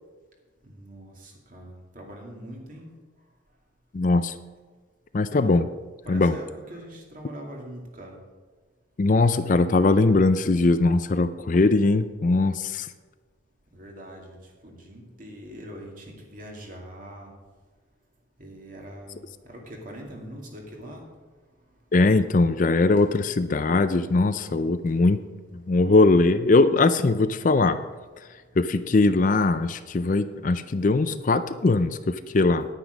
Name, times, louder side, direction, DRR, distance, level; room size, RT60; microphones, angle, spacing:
voice 1, 0.6-2.9 5.3-5.6 6.0-8.2 13.7-14.4 14.6-17.3 18.4-19.2 19.4-21.1 23.0-23.1 30.5-30.8 31.6-32.0, equal, 45° right, 0 dB, 2.4 m, -43 dB
voice 2, 3.9-4.3 5.1-5.6 6.1-6.4 9.0-12.9 21.9-25.2 25.5-27.8 28.6-32.7, left 3 dB, 40° left, 11 dB, 0.4 m, -21 dB
10.0 x 9.4 x 5.3 m, 1.4 s
head